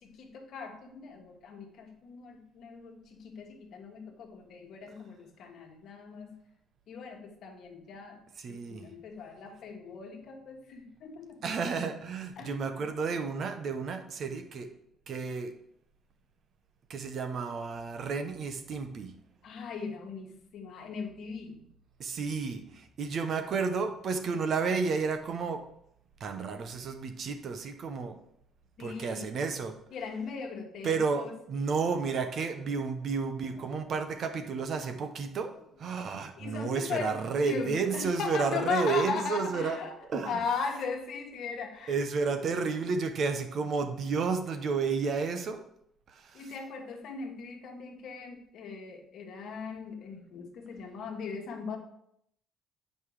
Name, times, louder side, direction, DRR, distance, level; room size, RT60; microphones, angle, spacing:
voice 1, 0.0-6.3 6.9-8.2 8.5-11.4 12.4-12.7 19.4-21.6 28.8-29.4 29.9-31.3 33.7-33.9 36.0-37.2 37.4-39.9 40.3-42.0 46.3-51.8, left 5 dB, 65° left, 3 dB, 1.5 m, -38 dB
voice 2, 8.4-8.9 11.4-14.7 15.1-15.5 16.9-19.1 22.0-25.6 26.2-28.2 28.8-29.8 30.8-35.5 35.8-39.8 40.1-40.4 41.9-45.6 46.1-46.5, right 5 dB, 55° right, 7 dB, 1.0 m, -31 dB
7.9 x 5.4 x 4.9 m, 0.73 s
cardioid pair, 100°, 0 cm